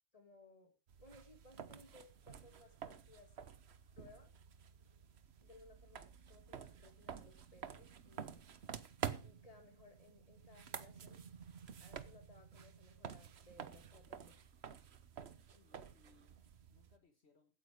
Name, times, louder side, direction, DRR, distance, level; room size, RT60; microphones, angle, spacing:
voice 1, 0.1-3.4 4.0-4.3 5.4-8.4 9.2-11.2 11.8-14.4 15.5-15.9, left 2 dB, 25° left, 5 dB, 2.6 m, -62 dB
sound 1, 0.9-17.0, right 7 dB, 55° right, 1.1 m, -50 dB
voice 2, 15.6-17.6, left 3 dB, 55° left, 5 dB, 1.7 m, -71 dB
16.0 x 9.2 x 4.8 m, 0.32 s
omnidirectional pair, 1.3 m